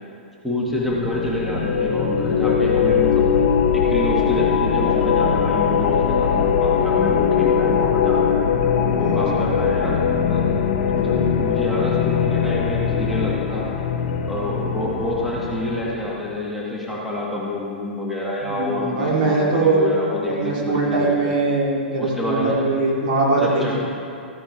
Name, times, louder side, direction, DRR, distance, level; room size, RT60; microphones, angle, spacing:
voice 1, 0.4-3.3 3.7-8.5 8.9-10.0 10.3-10.4 10.9-13.7 14.3-21.3 22.0-22.6 23.4-23.8, left 1 dB, ahead, -5 dB, 1.8 m, -27 dB
sound 1, 0.8-16.2, left 7 dB, 60° left, 1.1 m, -21 dB
voice 2, 9.0-9.8 10.9-11.4 18.4-19.8 20.4-23.8, right 3 dB, 55° right, -3 dB, 2.9 m, -22 dB
15.0 x 9.7 x 3.3 m, 2.4 s
figure-of-eight pair, 105°, 6 cm